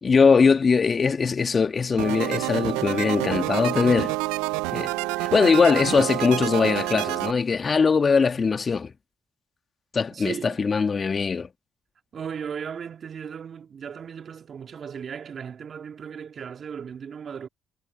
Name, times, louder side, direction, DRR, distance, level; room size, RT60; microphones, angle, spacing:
voice 1, 0.0-4.1 4.7-4.9 5.2-8.9 9.9-11.5, left 5 dB, 40° left, 2.1 m, -21 dB
sound 1, 2.0-7.3, right 22 dB, 80° right, 0.5 m, -28 dB
voice 2, 10.1-10.6 12.1-17.5, right 7 dB, 55° right, 2.5 m, -36 dB
hypercardioid pair, 50°, 0 cm